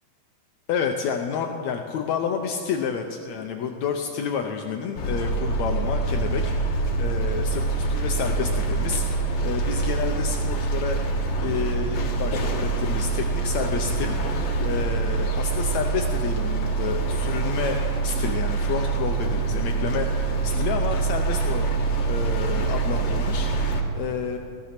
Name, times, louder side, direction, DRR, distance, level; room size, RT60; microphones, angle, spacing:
voice 1, 0.7-11.0 11.4-21.7 22.1-24.4, left 6 dB, 90° left, 4 dB, 1.5 m, -30 dB
sound 1, 5.0-23.8, right 4 dB, 55° left, 2.0 m, -25 dB
16.5 x 13.5 x 5.9 m, 2.4 s
omnidirectional pair, 4.2 m